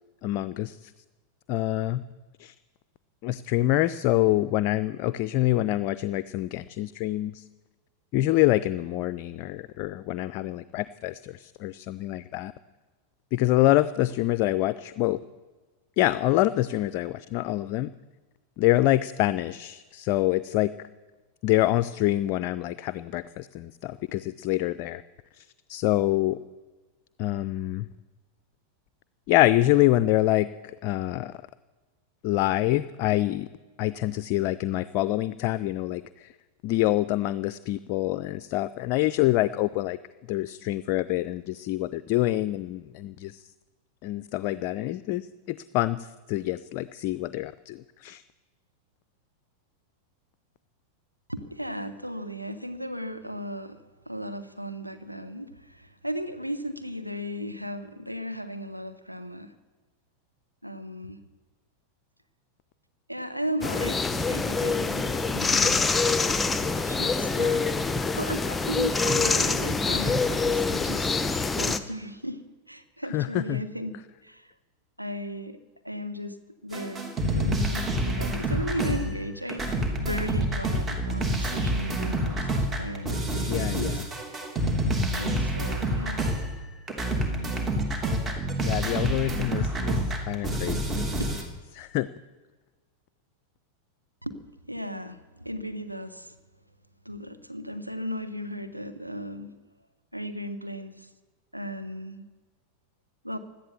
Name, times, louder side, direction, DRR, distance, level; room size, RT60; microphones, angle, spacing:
voice 1, 0.2-0.9 1.5-2.0 2.4-2.5 3.2-7.4 8.1-12.5 13.3-15.2 16.0-17.9 18.6-20.7 21.4-25.0 25.4-25.5 25.7-26.4 27.2-27.9 29.3-30.5 30.8-31.3 32.2-33.5 33.8-36.3 36.6-40.0 40.3-43.4 44.0-48.2 73.1-73.6 83.5-84.0 88.6-91.1 91.7-92.1, left 16 dB, 45° left, 16 dB, 0.5 m, -26 dB
voice 2, 51.3-59.5 60.6-61.2 63.1-65.9 66.8-67.7 67.9-71.1 71.5-74.0 74.2-74.5 75.0-75.6 75.8-76.4 76.6-77.0 77.3-82.5 82.8-84.0 85.2-86.3 91.2-91.4 94.2-94.4 94.6-96.3 97.0-99.5 100.1-101.1 101.5-102.2 103.2-103.4, equal, 90° right, 8 dB, 1.2 m, -36 dB
sound 1, 63.6-71.8, left 4 dB, 10° left, 1.0 m, -25 dB
sound 2, 76.7-79.2 79.5-86.6 86.9-91.4, right 1 dB, 20° right, 3.0 m, -28 dB
16.5 x 12.0 x 7.1 m, 1.3 s
figure-of-eight pair, 90°, 0 cm